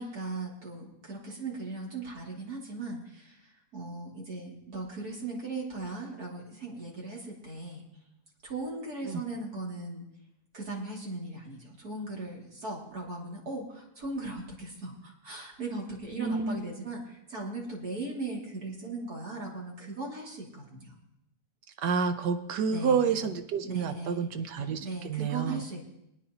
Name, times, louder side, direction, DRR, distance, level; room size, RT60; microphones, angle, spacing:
voice 1, 0.0-7.8 8.4-10.0 10.5-21.0 22.7-23.2 23.6-24.2 24.6-25.9, right 2 dB, 65° right, -3 dB, 3.0 m, -38 dB
voice 2, 16.2-16.6 21.8-25.6, right 6 dB, 90° right, 8 dB, 1.5 m, -29 dB
22.5 x 9.6 x 2.9 m, 0.83 s
omnidirectional pair, 1.8 m